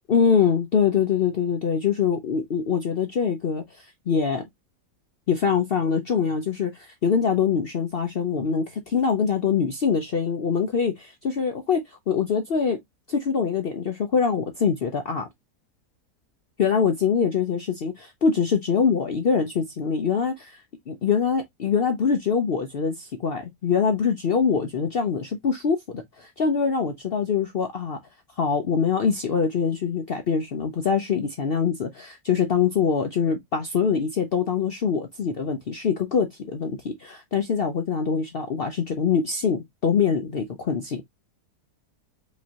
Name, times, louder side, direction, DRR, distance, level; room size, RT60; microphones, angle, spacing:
voice 1, 0.1-4.4 5.3-12.8 13.1-15.3 16.6-20.6 20.9-28.0 28.4-41.0, left 6 dB, 60° left, 0.6 m, -24 dB
5.1 x 3.0 x 2.8 m
omnidirectional pair, 1.7 m